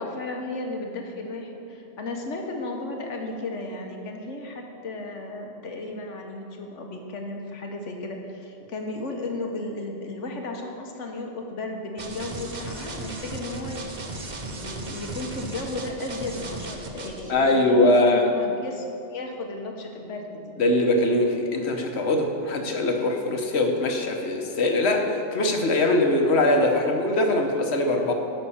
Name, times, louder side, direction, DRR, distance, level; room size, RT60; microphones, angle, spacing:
voice 1, 0.0-18.9 19.1-20.6, left 2 dB, 85° left, 2 dB, 1.5 m, -34 dB
sound 1, 12.0-17.3, right 2 dB, 40° right, 1.0 m, -36 dB
voice 2, 17.3-18.3 20.6-28.1, left 2 dB, 65° left, 3 dB, 1.3 m, -22 dB
12.0 x 5.8 x 7.1 m, 2.7 s
omnidirectional pair, 1.2 m